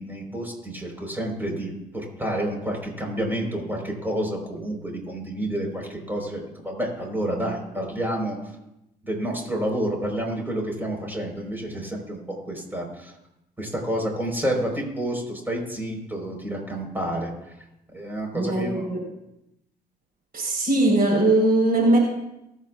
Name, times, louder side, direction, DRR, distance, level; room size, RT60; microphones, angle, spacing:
voice 1, 0.0-8.4 9.0-12.2 12.4-13.1 13.6-17.3 17.9-18.8, right 1 dB, 10° right, 0 dB, 4.3 m, -29 dB
voice 2, 18.3-19.1 20.3-22.0, right 2 dB, 55° right, -1 dB, 4.4 m, -20 dB
24.0 x 8.2 x 2.4 m, 0.88 s
supercardioid pair, 60°, 19 cm